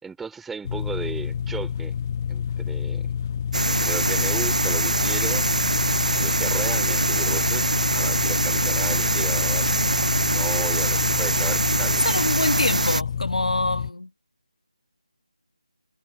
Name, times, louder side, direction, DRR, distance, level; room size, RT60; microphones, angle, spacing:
voice 1, 0.0-1.9 2.3-3.1 3.7-5.5 6.2-7.6 7.9-9.7 10.3-12.0, right 5 dB, 5° right, 5.2 m, -35 dB
sound 1, 0.6-13.9, left 8 dB, 25° left, 0.7 m, -28 dB
sound 2, 3.5-13.0, right 2 dB, 85° right, 0.7 m, -23 dB
voice 2, 12.0-14.1, left 2 dB, 85° left, 3.6 m, -25 dB
figure-of-eight pair, 165°, 4 cm